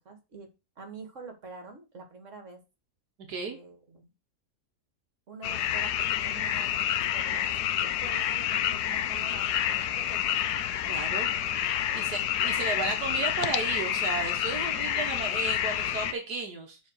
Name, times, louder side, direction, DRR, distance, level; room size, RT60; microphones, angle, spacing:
voice 1, 0.1-0.5 0.8-2.6 3.5-4.1 5.3-10.4 11.9-12.8, right 4 dB, 50° right, 5 dB, 2.4 m, -47 dB
sound 1, 5.4-16.1, left 10 dB, 80° left, 1.2 m, -28 dB
voice 2, 10.9-11.3 11.9-16.8, right 4 dB, 80° right, 3 dB, 1.8 m, -33 dB
7.3 x 4.3 x 6.5 m, 0.27 s
omnidirectional pair, 1.7 m